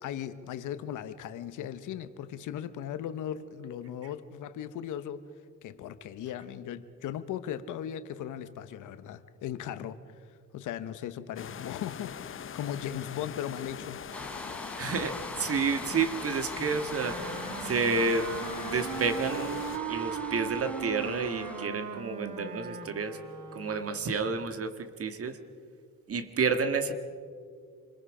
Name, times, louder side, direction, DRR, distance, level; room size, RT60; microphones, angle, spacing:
voice 1, 0.0-5.2 5.6-10.0 10.5-14.0, left 10 dB, 80° left, 1.1 m, -37 dB
sound 1, 11.4-19.8, left 8 dB, 45° left, 0.7 m, -42 dB
sound 2, 14.1-21.7, left 1 dB, 5° left, 1.0 m, -42 dB
voice 2, 14.8-18.3 18.6-19.6 19.9-23.2 23.5-25.4 26.1-26.9, right 4 dB, 50° right, 1.8 m, -30 dB
Wind instrument woodwind instrument, 16.6-23.9, right 6 dB, 80° right, 1.9 m, -38 dB
27.0 x 21.5 x 5.0 m
cardioid pair, 90°, 30 cm